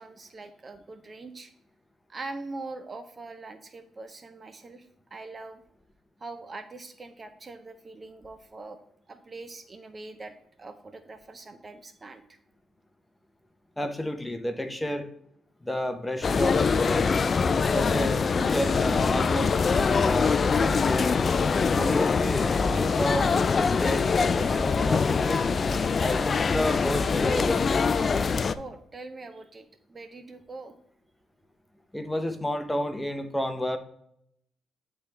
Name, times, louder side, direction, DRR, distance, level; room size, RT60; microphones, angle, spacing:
voice 1, 0.0-1.5 2.1-4.9 5.1-5.6 6.2-8.8 9.1-12.4 28.5-30.8, right 3 dB, 30° right, 9 dB, 0.5 m, -42 dB
voice 2, 13.8-15.1 15.6-17.1 17.7-21.1 21.7-25.4 26.0-27.7 31.9-33.8, left 1 dB, 10° left, 7 dB, 0.7 m, -31 dB
sound 1, 16.2-28.5, left 5 dB, 40° left, 0.3 m, -24 dB
9.9 x 3.4 x 3.2 m, 0.72 s
cardioid pair, 90°, 0 cm